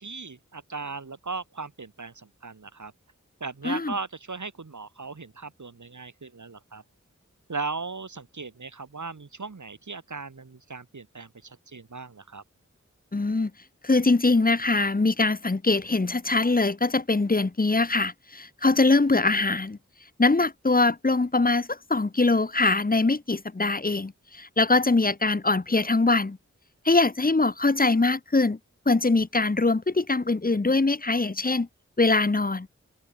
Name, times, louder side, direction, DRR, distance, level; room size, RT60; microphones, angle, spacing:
voice 1, 0.0-2.9 3.4-6.8 7.5-12.4, right 4 dB, 80° right, 2.9 m, -37 dB
voice 2, 13.1-13.5 13.8-19.8 20.2-26.4 26.8-28.6 28.9-31.7 32.0-32.7, left 3 dB, 30° left, 0.9 m, -23 dB
wide cardioid pair, 60°, 30 cm